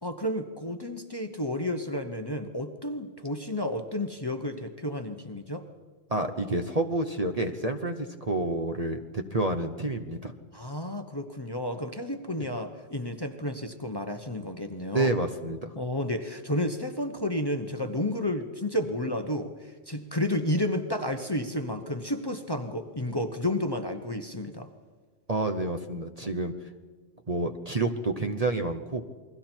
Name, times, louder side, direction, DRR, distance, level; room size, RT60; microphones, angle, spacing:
voice 1, 0.0-5.6 10.5-15.1 15.7-24.7, left 1 dB, 20° left, 5 dB, 1.0 m, -31 dB
voice 2, 6.1-10.3 12.4-12.5 14.9-15.7 25.3-26.5 27.3-29.0, right 2 dB, 35° right, 6 dB, 0.9 m, -29 dB
29.0 x 21.5 x 4.5 m, 1.4 s
omnidirectional pair, 1.3 m